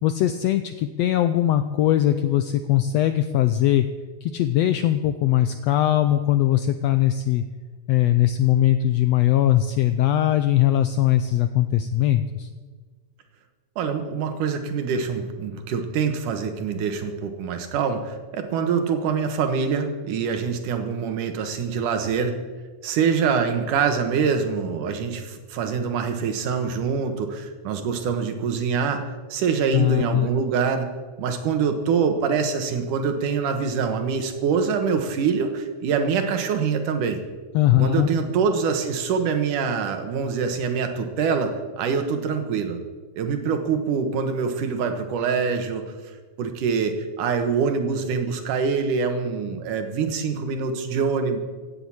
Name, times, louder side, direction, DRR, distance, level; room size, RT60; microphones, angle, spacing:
voice 1, 0.0-3.9 4.2-7.4 7.9-12.5 29.7-30.3 37.5-38.1, left 12 dB, 85° left, 10 dB, 1.5 m, -20 dB
voice 2, 13.8-22.4 22.8-29.0 29.3-30.9 31.2-37.2 37.8-42.8 43.2-45.8 46.4-51.4, right 6 dB, 80° right, 6 dB, 2.9 m, -25 dB
16.0 x 7.9 x 8.6 m, 1.4 s
omnidirectional pair, 3.6 m